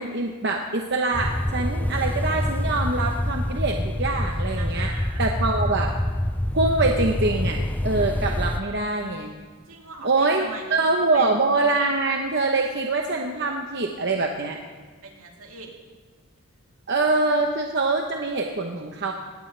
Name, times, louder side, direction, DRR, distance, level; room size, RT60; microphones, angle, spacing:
voice 1, 0.0-4.9 5.2-5.9 6.5-9.3 10.0-10.4 10.7-14.6 16.9-19.1, right 3 dB, 50° right, 2 dB, 0.9 m, -24 dB
sound 1, 1.1-8.6, left 1 dB, 10° left, 0.3 m, -26 dB
voice 2, 4.6-5.2 9.7-11.3 15.0-15.7 17.0-17.4, right 4 dB, 75° right, 0 dB, 2.4 m, -41 dB
19.5 x 17.0 x 3.3 m, 1.5 s
head